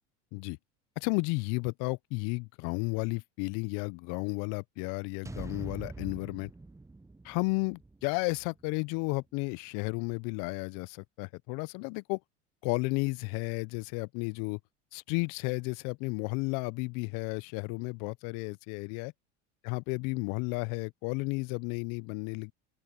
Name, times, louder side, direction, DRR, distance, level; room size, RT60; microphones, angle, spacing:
voice 1, 1.0-6.5 7.2-12.2 12.6-14.6 14.9-19.1 19.6-22.5, left 29 dB, 60° left, 0.8 m, -33 dB
sound 1, 5.2-9.5, right 3 dB, 10° right, 0.9 m, -45 dB
open air
hypercardioid pair, 85°, 36 cm